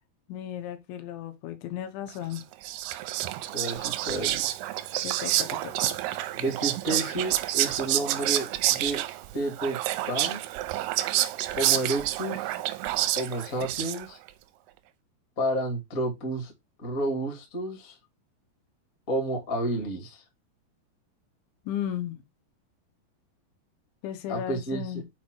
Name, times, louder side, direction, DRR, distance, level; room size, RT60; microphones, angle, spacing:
voice 1, 0.3-2.4 5.0-6.0 21.7-22.2 24.0-25.0, left 10 dB, 85° left, 3.3 m, -35 dB
Whispering, 2.3-14.3, right 14 dB, 85° right, 2.3 m, -29 dB
voice 2, 3.5-4.5 6.4-9.0 9.3-10.4 11.6-12.5 13.1-14.2 15.4-16.5 16.8-17.9 19.1-20.2 24.3-25.0, right 1 dB, 40° left, 1.2 m, -31 dB
7.3 x 4.5 x 2.9 m
omnidirectional pair, 5.1 m